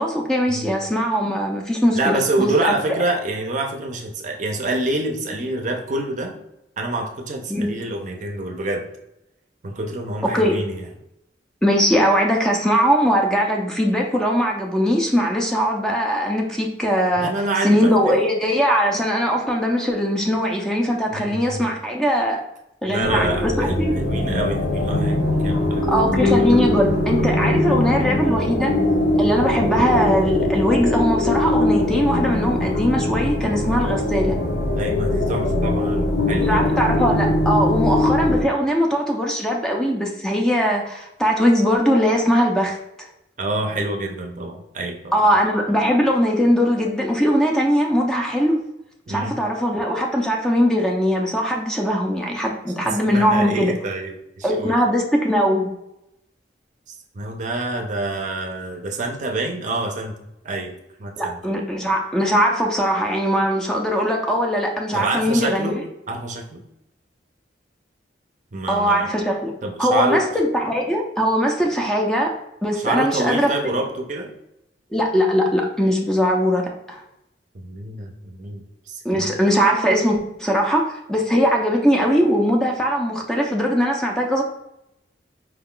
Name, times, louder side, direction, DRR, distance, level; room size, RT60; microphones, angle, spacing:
voice 1, 0.0-3.0 7.5-7.8 10.3-10.6 11.6-17.3 17.6-22.4 22.8-23.9 25.8-28.7 29.2-34.4 36.4-43.1 45.1-48.6 49.1-53.7 54.4-55.7 61.2-65.8 68.7-69.5 69.8-72.4 72.6-73.7 74.9-77.0 79.0-84.4, equal, 5° left, 0 dB, 0.5 m, -20 dB
voice 2, 1.9-6.4 6.8-8.9 9.6-10.9 17.2-18.1 21.1-21.7 22.8-25.8 34.8-36.7 43.4-45.3 49.1-49.4 52.8-54.8 57.1-60.1 60.4-61.4 64.9-65.8 66.1-66.6 68.5-69.1 69.6-70.2 72.8-74.3 77.5-79.3, right 2 dB, 45° right, 3 dB, 0.6 m, -27 dB
sound 1, 23.0-38.4, left 1 dB, 70° left, 1.1 m, -21 dB
4.7 x 2.3 x 3.7 m, 0.83 s
head